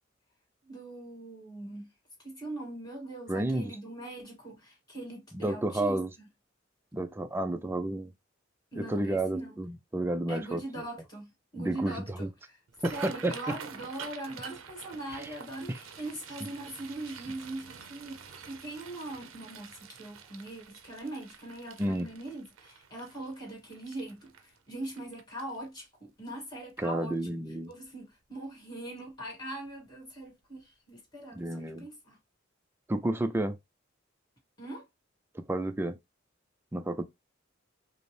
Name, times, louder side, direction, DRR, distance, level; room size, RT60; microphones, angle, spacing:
voice 1, 0.6-1.9 2.2-6.0 8.7-9.6 10.3-12.6 12.9-27.3 27.7-32.2 34.6-34.8, right 1 dB, 20° left, 2.0 m, -41 dB
voice 2, 3.3-3.7 5.3-6.1 6.9-8.1 8.8-10.6 11.6-12.3 12.8-13.6 15.1-15.2 15.7-15.8 21.8-22.1 26.8-27.7 31.3-31.9 32.9-33.6 35.3-36.0 36.7-37.0, right 1 dB, 10° right, 0.4 m, -31 dB
sound 1, 12.7-25.8 26.3-26.5 26.9-27.3 27.7-27.9 29.1-29.3 29.6-29.8 30.2-30.3, right 6 dB, 80° right, 0.6 m, -47 dB
5.2 x 2.1 x 3.2 m
head